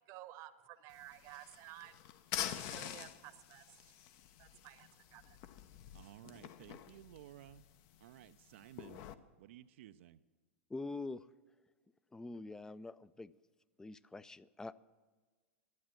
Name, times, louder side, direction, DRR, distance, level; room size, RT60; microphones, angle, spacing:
voice 1, 0.1-1.9 2.4-3.9 4.4-5.4, right 14 dB, 45° right, 13 dB, 0.9 m, -54 dB
sound 1, 0.9-9.1, left 11 dB, 50° left, 0.7 m, -47 dB
voice 2, 5.9-7.6 8.0-9.0 9.4-10.2, right 13 dB, 65° right, 11 dB, 0.4 m, -55 dB
voice 3, 10.7-11.3 12.1-13.3 13.8-14.8, left 3 dB, 10° left, 17 dB, 0.4 m, -45 dB
12.5 x 9.3 x 7.6 m, 1.4 s
hypercardioid pair, 105°, 7 cm